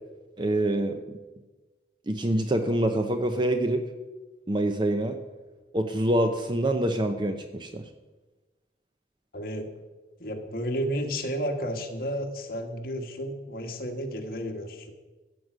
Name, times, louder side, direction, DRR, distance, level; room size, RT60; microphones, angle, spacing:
voice 1, 0.4-1.0 2.1-3.8 4.5-5.2 5.7-7.8, right 1 dB, 25° right, 7 dB, 0.6 m, -25 dB
voice 2, 9.3-9.7 10.2-14.9, equal, 55° left, 3 dB, 1.6 m, -32 dB
15.0 x 7.8 x 6.2 m, 1.2 s
head